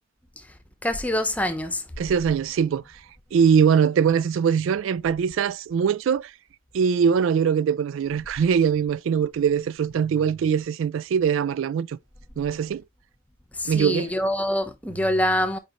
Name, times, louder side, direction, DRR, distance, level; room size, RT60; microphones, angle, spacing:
voice 1, 0.8-1.9 13.5-15.6, left 1 dB, 5° left, 0.8 m, -25 dB
voice 2, 2.0-2.8 3.3-6.3 6.7-12.0 12.4-12.8 13.7-14.1, right 7 dB, 70° right, 0.3 m, -22 dB
6.4 x 5.1 x 3.0 m
head